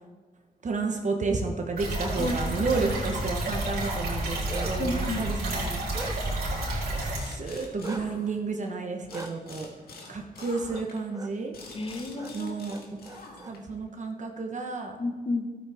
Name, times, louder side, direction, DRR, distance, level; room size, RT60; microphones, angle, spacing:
voice 1, 0.6-5.8 7.0-9.7 10.1-11.5 12.3-13.1 13.5-15.0, right 4 dB, 50° right, 2 dB, 1.1 m, -31 dB
sound 1, 1.8-7.2, right 1 dB, 85° right, 3.3 m, -30 dB
Bark, 4.3-4.9 5.4-6.5 7.8-8.0 9.1-9.3 10.7-10.9 11.1-11.3 12.1-12.3 12.7-13.5, right 3 dB, 20° right, 0.6 m, -40 dB
voice 2, 4.8-5.2 11.7-12.5 15.0-15.5, left 2 dB, 35° left, 6 dB, 1.1 m, -31 dB
sound 2, 7.1-8.7 9.1-13.8, left 3 dB, 75° left, 1.8 m, -47 dB
13.0 x 8.4 x 3.5 m, 1.4 s
cardioid pair, 75°, 16 cm